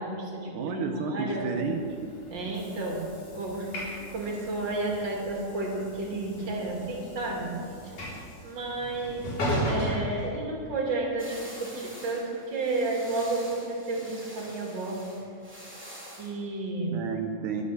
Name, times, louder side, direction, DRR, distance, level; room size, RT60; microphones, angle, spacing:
voice 1, 0.0-1.5 2.3-3.0 3.3-7.5 7.8-7.9 8.4-9.3 9.6-15.0 16.2-17.0, right 2 dB, 40° right, -1 dB, 3.1 m, -32 dB
voice 2, 0.5-2.1 16.9-17.6, right 5 dB, 80° right, 3 dB, 2.4 m, -31 dB
Train / Sliding door, 1.7-11.0, equal, 80° left, 5.6 m, -36 dB
sound 1, 11.2-16.4, equal, 5° right, 2.5 m, -46 dB
22.0 x 7.6 x 6.9 m, 2.4 s
omnidirectional pair, 3.5 m